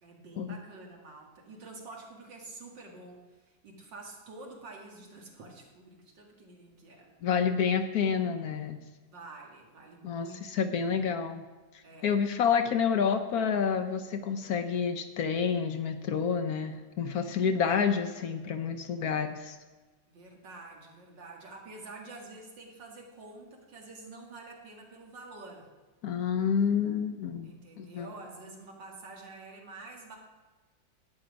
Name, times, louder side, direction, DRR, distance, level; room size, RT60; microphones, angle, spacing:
voice 1, 0.0-7.1 9.1-11.2 11.8-12.2 20.1-25.7 27.4-30.2, right 3 dB, 80° right, 0 dB, 2.6 m, -48 dB
voice 2, 7.2-8.8 10.0-11.4 12.0-19.6 26.0-27.5 27.8-28.1, left 6 dB, 65° left, 8 dB, 1.1 m, -29 dB
11.5 x 8.9 x 5.1 m, 1.2 s
omnidirectional pair, 1.9 m